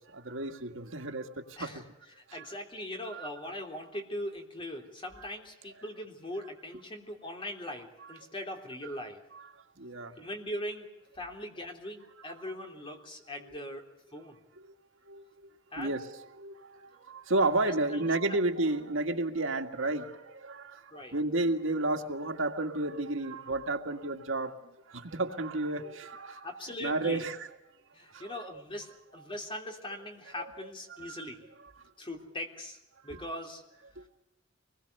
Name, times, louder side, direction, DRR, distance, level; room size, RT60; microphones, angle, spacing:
voice 1, 0.1-1.8 2.3-2.4 3.1-3.3 9.8-10.3 15.1-15.3 15.8-24.6 24.9-26.5 26.8-27.5 28.1-28.6 31.0-31.1 34.0-34.1, right 2 dB, 85° right, 5 dB, 2.0 m, -32 dB
voice 2, 1.6-9.2 10.2-10.9 11.1-14.4 15.7-15.9 17.6-18.4 20.9-21.1 26.4-27.3 27.9-31.5 32.0-32.8 33.0-33.6, left 1 dB, 25° left, 3 dB, 3.4 m, -41 dB
25.0 x 20.5 x 6.8 m, 0.90 s
head